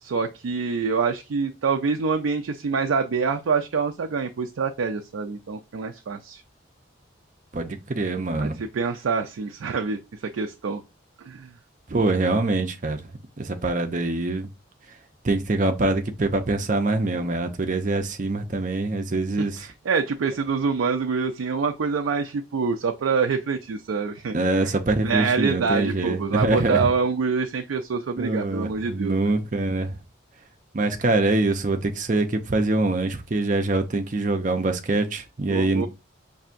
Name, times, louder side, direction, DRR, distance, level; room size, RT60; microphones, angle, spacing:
voice 1, 0.0-6.4 8.4-10.0 10.3-10.8 11.2-11.5 19.4-24.4 24.6-24.7 25.0-29.3 35.5-35.9, right 5 dB, 90° right, 0.4 m, -26 dB
voice 2, 7.5-8.6 11.9-13.0 13.4-14.5 15.2-19.7 24.3-26.9 28.2-29.9 30.7-35.9, right 2 dB, 40° right, 0.5 m, -24 dB
5.6 x 2.7 x 2.5 m
head